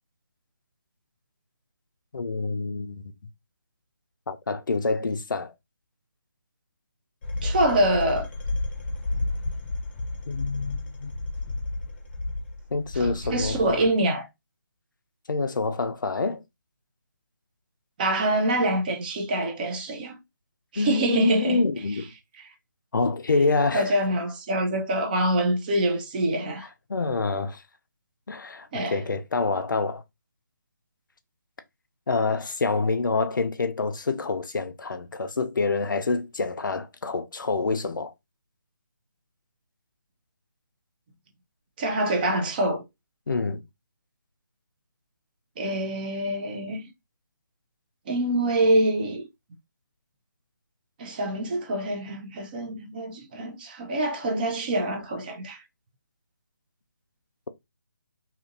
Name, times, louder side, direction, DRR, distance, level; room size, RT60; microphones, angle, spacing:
voice 1, 2.1-3.1 4.3-5.5 10.3-11.1 12.7-13.8 15.3-16.4 20.8-22.0 22.9-23.9 26.9-27.6 28.3-30.0 32.1-38.1 43.3-43.6, left 3 dB, 75° left, 0.5 m, -27 dB
sound 1, 7.2-14.0, left 2 dB, 35° left, 0.6 m, -32 dB
voice 2, 7.4-8.3 12.9-14.3 18.0-20.2 20.7-21.6 22.4-22.5 23.7-26.7 28.7-29.0 41.8-42.8 45.6-46.9 48.1-49.3 51.0-55.6, right 1 dB, 25° right, 0.5 m, -25 dB
2.7 x 2.5 x 2.5 m
figure-of-eight pair, 150°, 11 cm